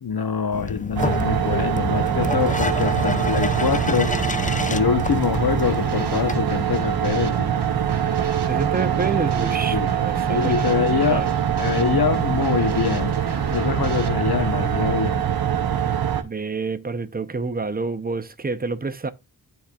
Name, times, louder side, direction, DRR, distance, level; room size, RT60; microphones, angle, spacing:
voice 1, 0.0-4.1 4.7-7.5 9.7-9.9 10.3-11.2 11.5-13.2 13.5-15.2, left 6 dB, 65° left, 0.9 m, -24 dB
sound 1, 0.5-6.4, left 3 dB, 20° left, 0.5 m, -29 dB
sound 2, 1.0-16.2, right 9 dB, 65° right, 0.7 m, -23 dB
Drum kit / Snare drum, 5.1-14.1, right 4 dB, 90° right, 1.0 m, -35 dB
voice 2, 8.4-10.5 10.9-11.3 16.2-19.1, right 4 dB, 25° right, 0.6 m, -28 dB
12.0 x 4.2 x 2.3 m
wide cardioid pair, 55°, 39 cm